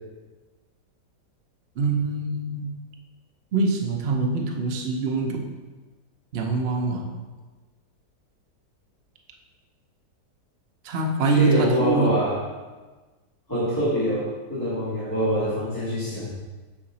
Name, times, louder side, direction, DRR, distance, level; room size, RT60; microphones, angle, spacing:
voice 1, 1.8-2.8 3.5-5.5 6.3-7.2 10.8-12.2, right 4 dB, 50° right, 2 dB, 0.8 m, -24 dB
voice 2, 11.3-12.4 13.5-16.3, equal, 10° left, -14 dB, 2.3 m, -24 dB
6.4 x 5.7 x 4.1 m, 1.3 s
omnidirectional pair, 1.9 m